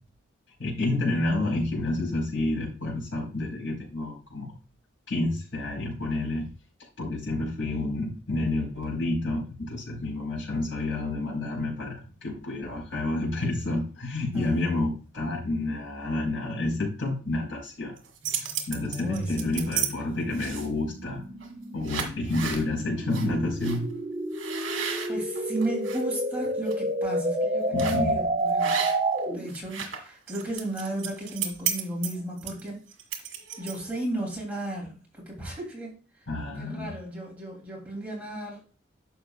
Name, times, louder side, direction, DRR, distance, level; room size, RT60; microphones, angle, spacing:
voice 1, 0.6-4.5 5.1-6.5 7.0-17.9 18.3-21.2 21.7-23.9 27.7-28.2 36.3-36.9, left 2 dB, 75° left, -3 dB, 4.6 m, -29 dB
voice 2, 7.3-7.6 14.3-14.9 18.9-20.0 25.1-28.9 29.3-32.8 33.6-36.0 36.6-38.6, right 1 dB, 10° right, -3 dB, 3.0 m, -35 dB
sound 1, 18.0-19.9 20.3-20.8 21.4-21.6 21.8-22.6 23.1-23.3 23.6-23.8 24.3-26.0 26.5-26.7 27.8-28.1 28.6-29.2 29.5-34.0, right 8 dB, 70° right, 1.9 m, -33 dB
sound 2, 18.2-29.6, right 1 dB, 30° right, 1.2 m, -30 dB
11.0 x 7.1 x 2.4 m, 0.35 s
head